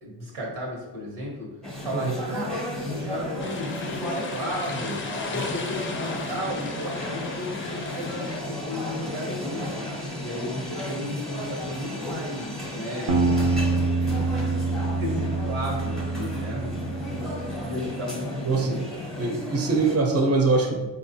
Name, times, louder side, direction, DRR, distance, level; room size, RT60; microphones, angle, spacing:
voice 1, 0.0-1.5 1.8-2.6 2.8-5.0 5.3-9.9 10.2-14.4 15.0-19.0, left 1 dB, 85° right, -3 dB, 1.2 m, -34 dB
sound 1, 1.6-20.0, left 1 dB, ahead, 0.8 m, -34 dB
sound 2, 3.4-8.4, left 4 dB, 25° left, 0.4 m, -36 dB
sound 3, 13.1-17.7, right 3 dB, 65° right, 0.7 m, -26 dB
voice 2, 19.2-20.7, right 3 dB, 30° right, 1 dB, 0.7 m, -22 dB
3.6 x 2.4 x 2.7 m, 1.1 s
cardioid pair, 55°, 49 cm